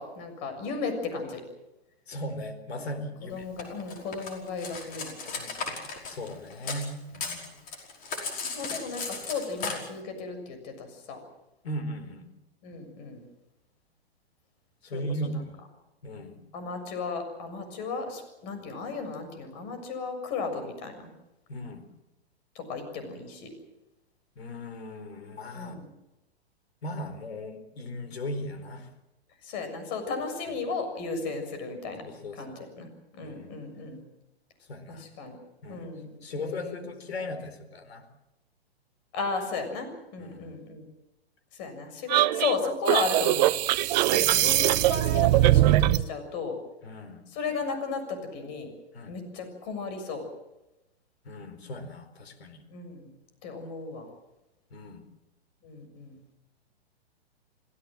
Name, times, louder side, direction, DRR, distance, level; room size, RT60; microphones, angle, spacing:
voice 1, 0.0-1.4 3.3-5.5 8.5-11.2 12.6-13.3 14.9-15.0 16.5-21.1 22.6-23.5 25.5-25.9 29.4-32.0 32.4-32.9 33.1-34.0 34.9-35.4 35.7-36.9 39.1-40.8 41.5-43.5 44.1-46.6 47.3-48.7 49.1-50.2 52.7-53.1 53.4-54.1 55.6-56.2, left 4 dB, 45° left, 7 dB, 7.0 m, -35 dB
voice 2, 2.1-3.5 6.1-7.5 11.6-12.3 14.8-15.6 16.0-16.4 21.5-21.8 24.4-25.9 26.8-28.9 30.5-30.6 32.0-32.4 33.2-33.5 34.7-35.0 35.6-35.9 36.2-38.0 40.2-40.6 43.9-44.2 46.8-47.2 48.9-49.2 51.2-52.6 54.7-55.0, left 1 dB, 70° left, 8 dB, 4.5 m, -37 dB
Cutlery silverware, 3.6-6.9 7.1-9.7, left 4 dB, 25° left, 5.2 m, -35 dB
sound 1, 42.1-46.1, right 15 dB, 40° right, 0.8 m, -21 dB
27.0 x 16.5 x 7.7 m, 0.94 s
hypercardioid pair, 120°, 32 cm